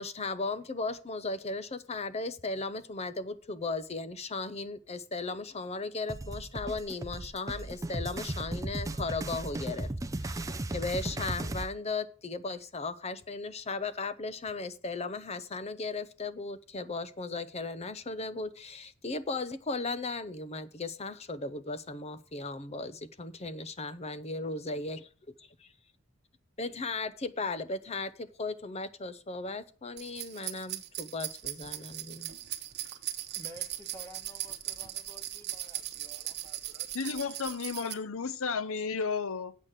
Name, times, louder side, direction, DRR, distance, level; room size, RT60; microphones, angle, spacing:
voice 1, 0.0-9.9 10.2-25.1 26.6-32.3, left 3 dB, 30° left, 0.7 m, -36 dB
sound 1, 6.1-11.7, right 2 dB, 15° right, 0.4 m, -36 dB
sound 2, 30.0-37.9, right 13 dB, 50° right, 1.0 m, -39 dB
voice 2, 32.9-37.5 37.8-38.0, right 1 dB, 10° left, 1.8 m, -53 dB
voice 3, 36.9-39.5, left 5 dB, 75° left, 0.7 m, -33 dB
8.3 x 6.6 x 7.4 m
head